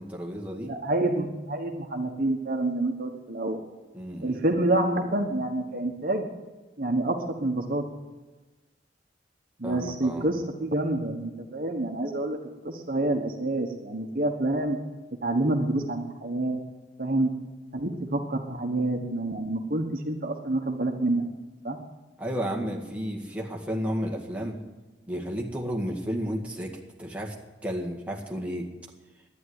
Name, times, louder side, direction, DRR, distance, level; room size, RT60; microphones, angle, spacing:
voice 1, 0.0-0.7 3.9-4.4 9.6-10.3 22.2-24.6 25.1-27.4 27.6-28.7, equal, 5° right, -1 dB, 1.9 m, -32 dB
voice 2, 0.7-3.6 4.2-6.3 6.8-7.8 9.6-12.4 12.6-14.8 15.2-16.6 17.0-17.3 17.7-21.2 21.6-21.8, right 2 dB, 50° right, 4 dB, 1.3 m, -27 dB
11.5 x 9.8 x 9.7 m, 1.2 s
head